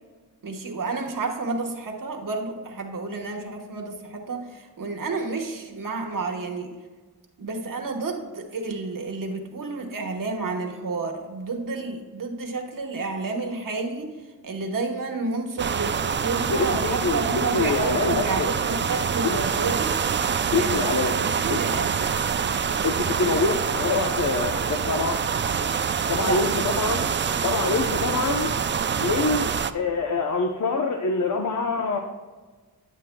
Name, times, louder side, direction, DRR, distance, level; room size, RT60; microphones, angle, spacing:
voice 1, 0.4-6.7 7.4-14.1 14.4-19.9 20.5-22.2 26.2-26.4, right 3 dB, 60° right, 3 dB, 1.2 m, -30 dB
sound 1, 15.6-29.7, right 6 dB, 30° right, 0.4 m, -26 dB
voice 2, 16.5-18.5 19.2-19.4 20.5-21.2 21.5-21.6 22.8-25.2 26.1-27.1 27.4-28.5 29.0-32.0, left 4 dB, 55° left, 4 dB, 0.8 m, -25 dB
10.0 x 7.5 x 2.2 m, 1.4 s
cardioid pair, 70°, 37 cm